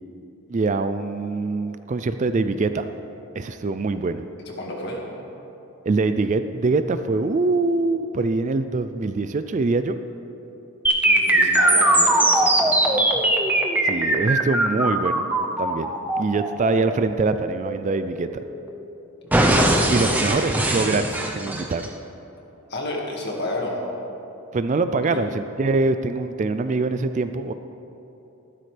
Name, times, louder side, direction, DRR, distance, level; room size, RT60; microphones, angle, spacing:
voice 1, 0.5-2.9 3.4-4.2 5.9-10.0 13.8-15.3 15.6-18.3 19.9-21.8 24.5-27.5, right 3 dB, 35° right, 10 dB, 0.3 m, -24 dB
voice 2, 4.6-5.1 11.0-13.3 20.1-20.2 22.7-23.8 25.1-25.2, left 1 dB, 50° left, -1 dB, 1.9 m, -31 dB
sound 1, 10.8-18.8 19.3-21.9, right 1 dB, 10° right, 0.7 m, -20 dB
14.5 x 12.5 x 3.3 m, 3.0 s
head